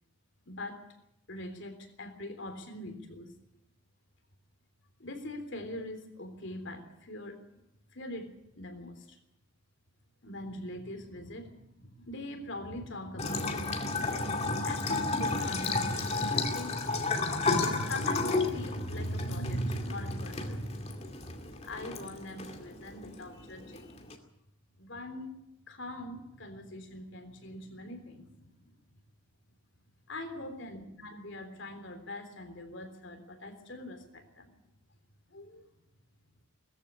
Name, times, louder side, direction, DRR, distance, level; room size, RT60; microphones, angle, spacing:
voice 1, 0.5-0.8 1.3-3.3 5.0-7.4 7.9-8.3 8.6-9.2 10.2-14.3 14.6-21.3 21.6-24.0 24.8-25.3 25.7-28.7 30.1-34.5 35.3-35.7, left 1 dB, 55° left, 7 dB, 3.5 m, -41 dB
Bathtub (filling or washing) / Trickle dribble, 13.2-24.1, left 3 dB, 30° left, 2.4 m, -33 dB
20.0 x 14.5 x 9.8 m, 0.84 s
head